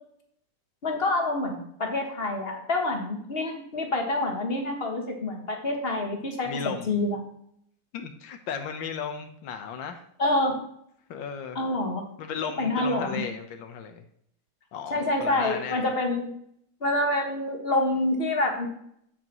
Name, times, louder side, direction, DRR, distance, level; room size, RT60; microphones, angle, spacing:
voice 1, 0.8-6.5 6.9-7.2 10.2-10.6 11.6-12.0 12.4-13.2 14.9-16.3 16.8-18.7, left 2 dB, 35° left, 2 dB, 1.7 m, -27 dB
voice 2, 6.5-6.9 7.9-10.0 11.1-11.6 12.2-14.0 14.7-15.9, left 6 dB, 90° left, 6 dB, 1.7 m, -35 dB
8.6 x 8.6 x 3.0 m, 0.69 s
omnidirectional pair, 2.0 m